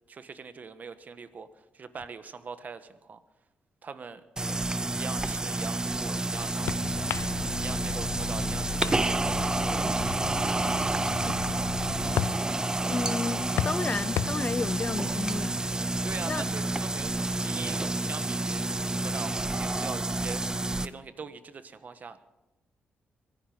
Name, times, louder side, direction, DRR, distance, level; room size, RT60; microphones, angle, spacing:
voice 1, 0.1-1.5 1.7-3.2 3.8-4.2 4.9-7.1 7.6-11.1 16.0-17.1 17.4-18.6 19.0-20.4 20.8-22.2, right 5 dB, 50° right, 1.4 m, -42 dB
sound 1, 4.4-20.9, right 2 dB, 20° right, 0.7 m, -29 dB
sound 2, 5.9-16.7, left 11 dB, 90° left, 0.4 m, -38 dB
sound 3, 6.6-12.1, left 7 dB, 70° left, 0.8 m, -38 dB
voice 2, 12.9-15.6 16.3-16.4, left 4 dB, 35° left, 0.5 m, -32 dB
23.0 x 11.0 x 5.1 m
cardioid pair, 85°, 4 cm